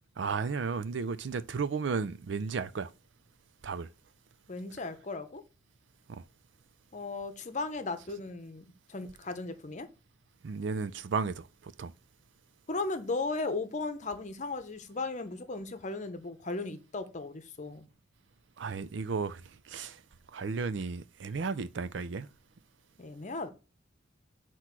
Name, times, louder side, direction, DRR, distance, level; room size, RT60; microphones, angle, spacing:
voice 1, 0.2-2.9 3.6-3.9 6.1-6.2 10.4-11.9 18.6-20.0 20.3-22.3, right 5 dB, 65° right, 0.5 m, -34 dB
voice 2, 4.5-5.4 6.9-9.9 12.7-17.9 23.0-23.5, left 3 dB, 40° left, 0.8 m, -36 dB
7.9 x 3.0 x 5.9 m
head